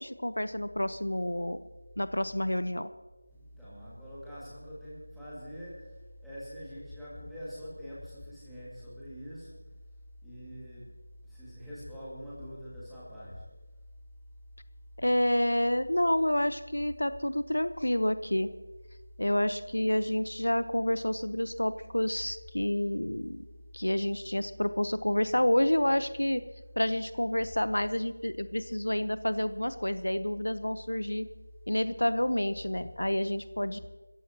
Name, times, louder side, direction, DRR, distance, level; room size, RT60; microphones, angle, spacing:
voice 1, 0.0-1.6 2.0-2.9 15.0-18.5 19.2-23.4 23.7-26.4 26.8-31.3 31.7-33.8, left 1 dB, 75° left, 13 dB, 0.8 m, -29 dB
voice 2, 3.3-6.0 6.2-9.6 10.2-10.9 11.2-13.4, equal, ahead, -14 dB, 2.2 m, -44 dB
27.5 x 14.5 x 2.9 m, 1.2 s
figure-of-eight pair, 175°, 0 cm